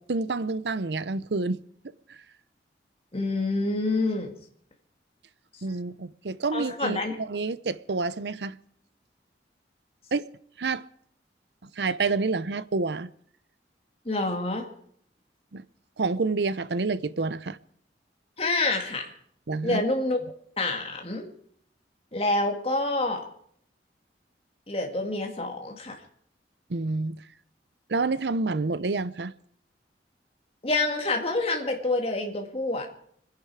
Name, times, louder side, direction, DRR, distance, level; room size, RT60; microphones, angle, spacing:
voice 1, 0.0-1.6 2.1-2.2 5.6-8.6 10.1-10.3 10.6-10.9 11.6-13.1 15.5-15.6 16.0-17.6 19.5-19.8 26.7-27.2 27.9-29.3, right 3 dB, 75° right, 0.7 m, -28 dB
voice 2, 3.1-4.3 6.5-7.2 14.1-14.7 18.4-19.1 19.6-20.2 20.6-21.3 22.1-23.2 24.7-26.0 30.6-32.9, left 2 dB, 35° left, 2.2 m, -27 dB
25.5 x 10.5 x 4.8 m
head